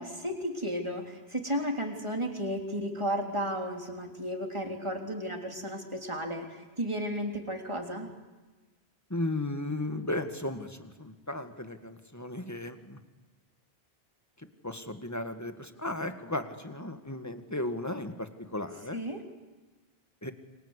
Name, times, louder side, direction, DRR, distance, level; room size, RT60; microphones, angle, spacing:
voice 1, 0.0-8.1 18.9-19.2, equal, 25° right, 3 dB, 3.6 m, -33 dB
voice 2, 9.1-13.0 14.6-19.0 20.2-20.3, left 1 dB, 15° left, 8 dB, 1.9 m, -35 dB
29.0 x 25.0 x 8.3 m, 1.2 s
omnidirectional pair, 1.1 m